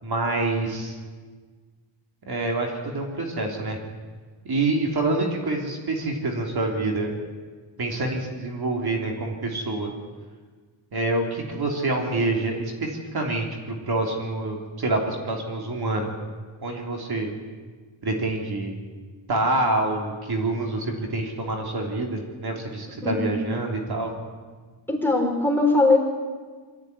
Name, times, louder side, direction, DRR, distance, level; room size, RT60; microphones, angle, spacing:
voice 1, 0.0-1.0 2.3-3.8 4.5-7.1 7.8-9.9 10.9-16.1 16.6-17.3 18.0-18.8 19.3-24.1, right 2 dB, 55° right, 1 dB, 3.5 m, -26 dB
voice 2, 24.9-26.0, left 2 dB, 5° left, 0 dB, 4.5 m, -20 dB
23.0 x 14.5 x 9.8 m, 1.5 s
wide cardioid pair, 120°, 46 cm